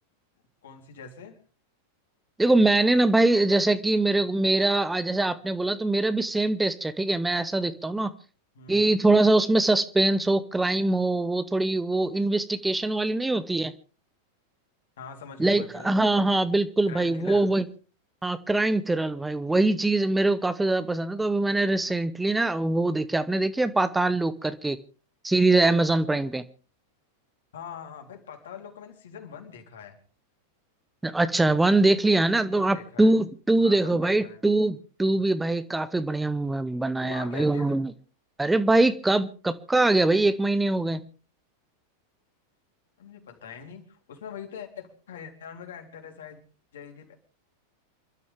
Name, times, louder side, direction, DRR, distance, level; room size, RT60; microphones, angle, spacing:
voice 1, 0.6-1.4 8.5-9.0 15.0-15.9 16.9-17.5 27.5-30.0 32.4-33.1 33.6-34.4 37.0-37.8 43.0-46.4 46.7-47.1, left 7 dB, 60° left, 3 dB, 3.5 m, -43 dB
voice 2, 2.4-8.1 8.7-13.7 15.4-17.6 18.2-24.8 25.2-26.4 31.0-37.9 38.4-41.0, right 2 dB, 5° right, 13 dB, 0.8 m, -23 dB
28.5 x 12.5 x 3.5 m, 0.38 s
figure-of-eight pair, 90°, 0 cm